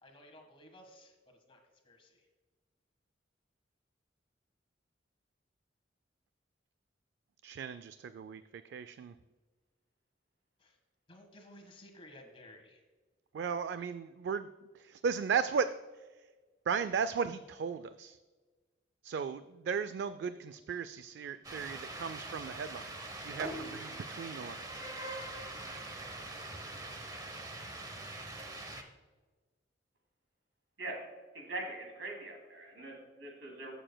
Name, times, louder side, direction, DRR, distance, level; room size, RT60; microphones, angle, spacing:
voice 1, 0.0-1.1 1.5-1.6 1.8-2.2 10.6-10.7 11.1-12.8, left 1 dB, 30° left, 3 dB, 1.5 m, -55 dB
voice 2, 7.4-9.2 13.3-14.5 14.7-15.7 16.0-16.1 16.7-18.2 19.0-22.9 23.2-24.8, right 6 dB, 65° right, 12 dB, 0.3 m, -36 dB
sound 1, 21.4-28.8, right 2 dB, 20° right, 0.8 m, -43 dB
voice 3, 31.3-33.7, right 2 dB, 85° right, 1 dB, 2.7 m, -42 dB
15.0 x 6.9 x 2.2 m, 1.3 s
head